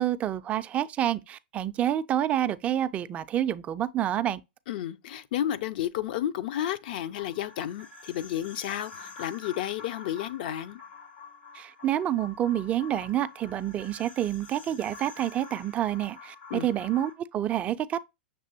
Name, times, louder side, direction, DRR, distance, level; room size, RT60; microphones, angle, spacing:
voice 1, 0.0-4.4 11.5-18.0, right 11 dB, 25° right, 0.3 m, -28 dB
voice 2, 4.7-10.8 16.5-16.7, left 11 dB, 60° left, 0.5 m, -32 dB
sound 1, 7.2-17.1, left 5 dB, 85° left, 1.5 m, -47 dB
6.7 x 2.9 x 2.7 m
hypercardioid pair, 130°, 6 cm